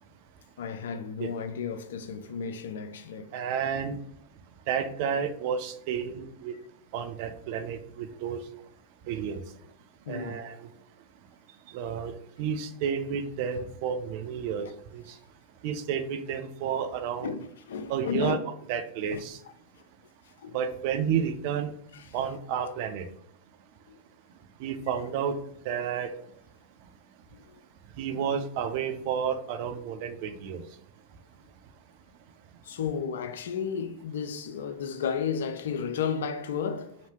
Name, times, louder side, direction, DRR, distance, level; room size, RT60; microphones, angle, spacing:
voice 1, 0.6-3.3 10.1-10.3 17.2-18.4 19.1-19.2 20.4-20.6 21.9-22.0 23.9-24.0 27.3-27.4 28.1-28.2 32.6-37.0, left 7 dB, 65° left, 0.3 m, -33 dB
voice 2, 3.3-4.0 4.7-6.5 6.9-8.4 9.1-9.4 10.1-10.6 11.7-12.1 12.4-15.0 15.6-17.4 17.9-18.4 18.7-19.4 20.5-21.7 22.1-23.1 24.6-25.4 25.7-26.1 28.0-30.6, right 7 dB, 50° right, 0.4 m, -31 dB
2.9 x 2.7 x 3.0 m
figure-of-eight pair, 90°, 0 cm